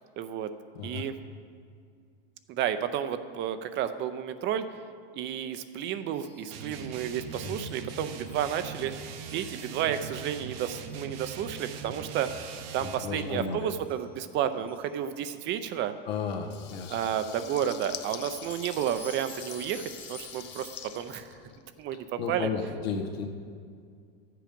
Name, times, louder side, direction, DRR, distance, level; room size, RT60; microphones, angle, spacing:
voice 1, 0.2-0.5 0.8-1.1 2.5-4.6 5.1-12.3 12.7-15.9 16.9-20.7 21.0-21.3 21.8-22.5, right 9 dB, 40° right, 10 dB, 0.6 m, -31 dB
sound 1, 6.1-14.0 14.7-14.9 15.6-15.7 17.9-21.2, left 2 dB, 5° left, 1.1 m, -51 dB
sound 2, 6.5-13.1, right 6 dB, 70° right, 1.1 m, -41 dB
voice 2, 12.8-13.7 16.1-17.0 22.2-23.3, left 5 dB, 85° left, 1 dB, 1.6 m, -33 dB
Water tap faucet / Liquid, 16.4-21.9, left 11 dB, 35° left, 0.6 m, -45 dB
13.0 x 7.7 x 5.2 m, 2.2 s
supercardioid pair, 125°, 30 cm